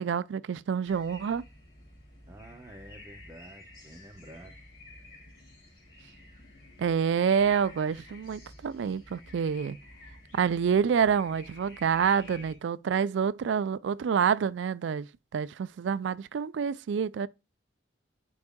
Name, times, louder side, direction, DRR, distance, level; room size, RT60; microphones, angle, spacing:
voice 1, 0.0-1.4 6.8-9.8 10.3-15.1 15.3-17.3, right 7 dB, 85° right, 0.3 m, -27 dB
sound 1, 0.8-12.5, left 2 dB, 50° left, 3.2 m, -51 dB
voice 2, 2.3-4.6, right 1 dB, 15° right, 1.0 m, -49 dB
9.5 x 4.7 x 2.2 m
head